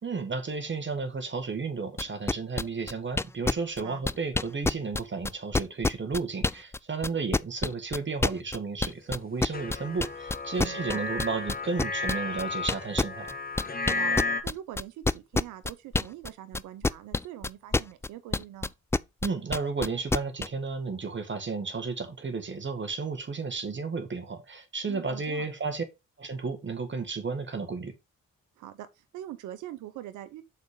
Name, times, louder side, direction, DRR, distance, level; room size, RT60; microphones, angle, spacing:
voice 1, 0.0-13.3 19.2-25.8 26.2-27.9, right 4 dB, 40° right, 1.6 m, -33 dB
sound 1, 2.0-6.8 7.0-16.3 16.5-20.5, left 3 dB, 10° left, 0.3 m, -27 dB
voice 2, 3.7-4.0 10.6-11.0 13.8-18.7 24.9-25.5 28.6-30.4, right 12 dB, 85° right, 0.7 m, -43 dB
sound 2, 9.5-14.4, left 3 dB, 30° left, 1.3 m, -33 dB
6.9 x 4.2 x 4.9 m
supercardioid pair, 55°, 30 cm